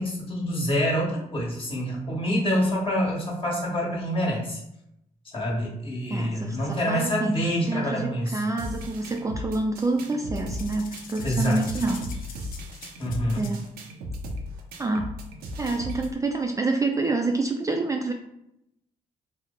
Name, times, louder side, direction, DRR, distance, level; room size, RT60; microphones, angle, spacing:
voice 1, 0.0-4.6 5.3-8.4 11.2-11.6 13.0-13.4, equal, 35° left, -4 dB, 1.3 m, -26 dB
voice 2, 6.1-12.1 13.4-13.6 14.8-15.1 15.6-18.1, right 3 dB, 20° right, 2 dB, 0.4 m, -27 dB
sound 1, 8.6-16.1, left 1 dB, 85° right, 0.5 m, -36 dB
sound 2, 10.5-13.7, left 6 dB, 70° left, 0.5 m, -44 dB
3.0 x 2.0 x 3.7 m, 0.80 s
supercardioid pair, 65°, 15 cm